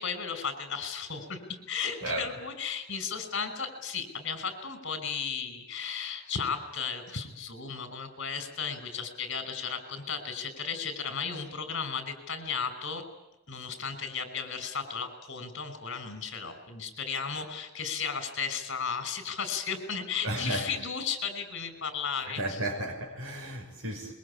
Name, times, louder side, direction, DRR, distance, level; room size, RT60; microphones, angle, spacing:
voice 1, 0.0-13.0 13.5-22.6, left 6 dB, 55° left, 10 dB, 5.7 m, -35 dB
voice 2, 20.2-20.7 22.3-24.1, right 1 dB, 70° right, -1 dB, 6.0 m, -33 dB
26.0 x 23.5 x 8.7 m, 0.95 s
head